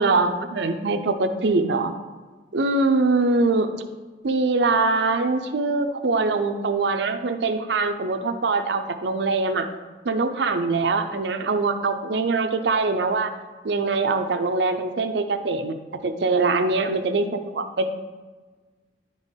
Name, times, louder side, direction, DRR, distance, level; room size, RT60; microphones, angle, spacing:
voice 1, 0.0-1.9 2.5-3.7 4.2-9.7 10.0-13.3 13.6-15.8 16.0-17.9, right 3 dB, 75° right, 8 dB, 0.6 m, -23 dB
10.5 x 3.7 x 4.0 m, 1.3 s
head